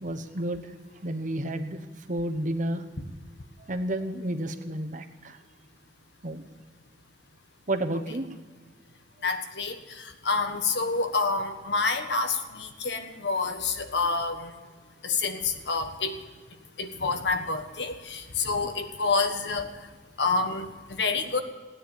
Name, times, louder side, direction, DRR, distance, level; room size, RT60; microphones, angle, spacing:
voice 1, 0.0-0.6 1.0-1.8 2.1-2.8 3.7-5.4 6.2-6.4 7.7-8.3, right 1 dB, 45° right, 7 dB, 1.2 m, -30 dB
voice 2, 9.2-9.8 10.2-14.5 15.0-16.1 16.8-19.7 20.2-20.7 21.0-21.4, left 4 dB, 75° left, 7 dB, 1.5 m, -28 dB
16.5 x 9.8 x 7.3 m, 1.5 s
head